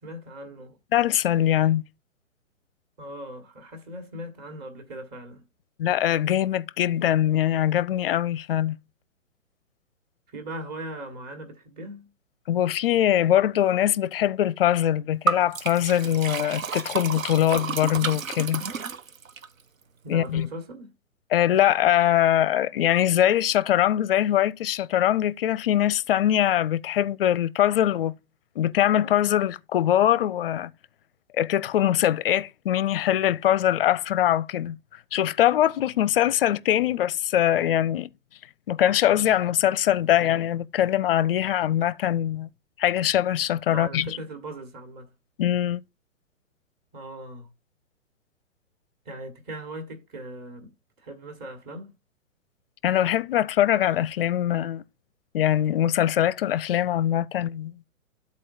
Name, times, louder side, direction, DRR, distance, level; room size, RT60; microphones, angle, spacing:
voice 1, 0.0-0.8 3.0-5.5 10.3-12.1 20.0-20.9 43.7-45.1 46.9-47.5 49.0-51.9, right 1 dB, 25° right, 1.5 m, -39 dB
voice 2, 0.9-1.8 5.8-8.8 12.5-18.6 20.1-20.5 21.3-28.1 28.6-30.7 31.3-34.8 35.1-38.1 38.7-42.5 42.8-44.1 45.4-45.8 52.8-54.8 55.3-57.8, left 11 dB, 45° left, 0.5 m, -22 dB
Liquid, 15.3-19.5, right 5 dB, 80° right, 0.8 m, -30 dB
12.5 x 4.2 x 2.6 m
figure-of-eight pair, 125°, 40 cm